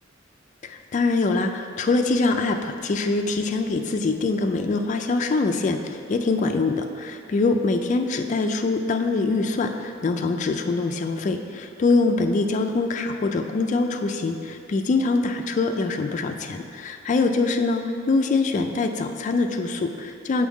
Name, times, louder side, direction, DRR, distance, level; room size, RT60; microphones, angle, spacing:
voice 1, 0.6-20.5, left 3 dB, 40° left, 5 dB, 0.3 m, -24 dB
7.2 x 4.6 x 3.5 m, 2.4 s
head